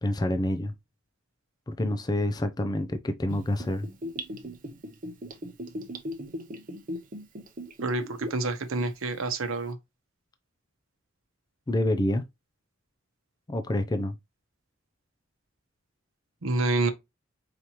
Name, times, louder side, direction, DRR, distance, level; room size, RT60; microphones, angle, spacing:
voice 1, 0.0-0.7 1.7-3.9 11.7-12.3 13.5-14.1, left 1 dB, 20° left, 0.4 m, -27 dB
Gurgling / Bathtub (filling or washing), 3.3-8.5 8.8-8.9, equal, 40° right, 0.8 m, -37 dB
voice 2, 7.8-9.8 16.4-16.9, right 2 dB, 90° right, 0.8 m, -28 dB
5.0 x 2.9 x 2.9 m
head